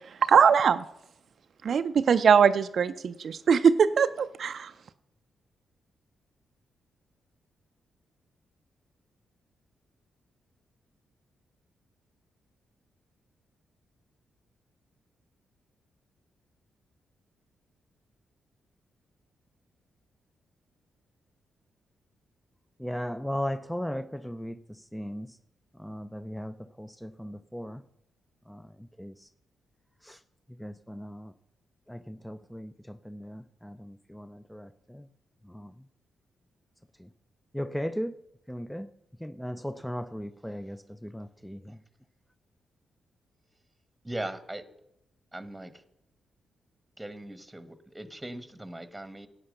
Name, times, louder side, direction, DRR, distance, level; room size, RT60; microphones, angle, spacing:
voice 1, 0.2-0.8 1.6-4.7, right 6 dB, 60° right, 11 dB, 0.4 m, -21 dB
voice 2, 22.8-25.4 25.8-27.8 28.5-28.7 29.0-29.3 30.0-30.2 30.6-31.3 31.9-35.1 35.5-35.7 37.0-37.1 37.5-38.2 38.5-38.9 39.2-41.8, equal, 5° left, 13 dB, 0.5 m, -37 dB
voice 3, 44.0-44.6 45.3-45.7 47.0-49.3, right 1 dB, 10° right, 12 dB, 1.2 m, -39 dB
11.0 x 8.9 x 6.6 m, 0.82 s
hypercardioid pair, 40°, 0 cm